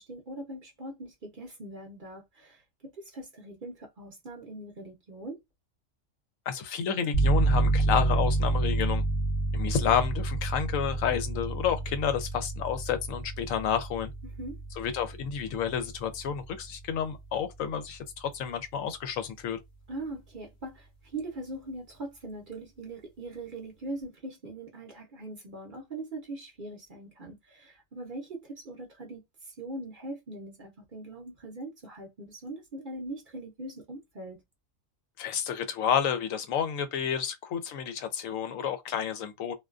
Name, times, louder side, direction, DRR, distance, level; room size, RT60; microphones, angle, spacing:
voice 1, 0.0-2.6 2.9-5.4 14.2-14.6 19.9-29.2 29.6-34.4, right 2 dB, 45° right, 0.7 m, -41 dB
voice 2, 6.5-9.0 9.5-14.1 14.8-19.6 35.2-39.5, left 8 dB, 80° left, 1.0 m, -30 dB
sound 1, 7.1-17.7, right 2 dB, 50° left, 0.8 m, -29 dB
2.5 x 2.3 x 2.4 m
omnidirectional pair, 1.4 m